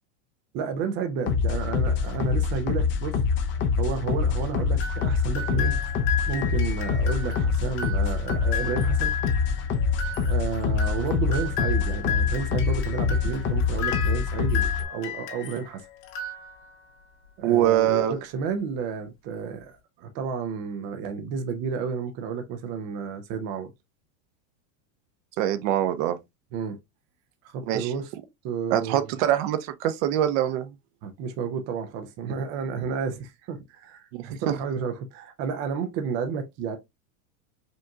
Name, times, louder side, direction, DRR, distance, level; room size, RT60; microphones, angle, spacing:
voice 1, 0.5-3.2 3.8-5.8 6.3-9.2 10.2-15.9 17.4-23.7 26.5-26.8 27.4-28.1 28.4-29.1 31.0-36.8, right 6 dB, 30° right, 0.3 m, -31 dB
sound 1, 1.3-14.8, left 5 dB, 25° left, 0.5 m, -25 dB
sound 2, 4.8-15.7 16.0-16.9, left 6 dB, 75° left, 1.8 m, -34 dB
voice 2, 17.4-18.1 25.4-26.2 27.7-27.9 28.7-30.7 34.1-34.6, right 11 dB, 55° right, 0.7 m, -24 dB
5.2 x 2.7 x 2.3 m
supercardioid pair, 145°, 47 cm